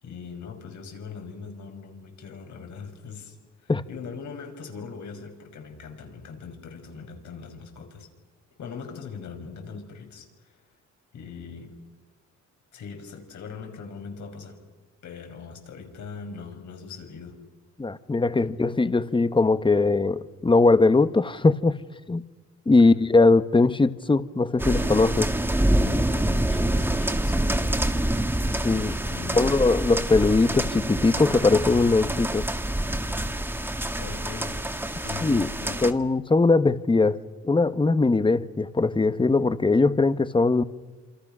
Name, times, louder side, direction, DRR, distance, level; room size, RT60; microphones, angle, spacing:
voice 1, 0.0-8.1 8.6-10.5 11.1-11.7 12.7-14.6 15.0-17.4 18.4-18.5 22.7-23.0 26.5-27.6 28.4-29.6 34.0-34.5 35.0-35.8, left 5 dB, 70° left, 6.0 m, -41 dB
voice 2, 17.8-21.8 22.1-22.2 22.7-25.3 28.6-28.9 29.3-32.5 35.2-35.5 35.8-40.6, left 3 dB, 15° left, 1.2 m, -20 dB
sound 1, 24.6-35.9, right 1 dB, 5° right, 1.8 m, -26 dB
27.5 x 26.5 x 6.2 m
cardioid pair, 90°, 30 cm